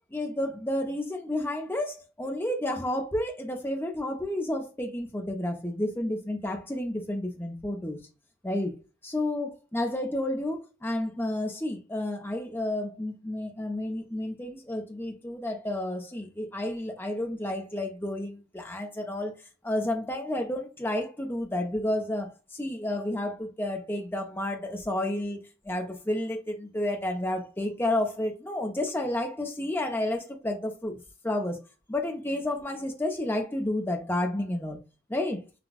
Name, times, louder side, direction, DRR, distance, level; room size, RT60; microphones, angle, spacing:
voice 1, 0.1-8.0 8.4-8.8 9.0-19.4 19.6-25.4 25.6-31.6 31.9-34.8 35.1-35.4, left 1 dB, 10° left, 0.8 m, -31 dB
5.9 x 2.4 x 2.3 m
head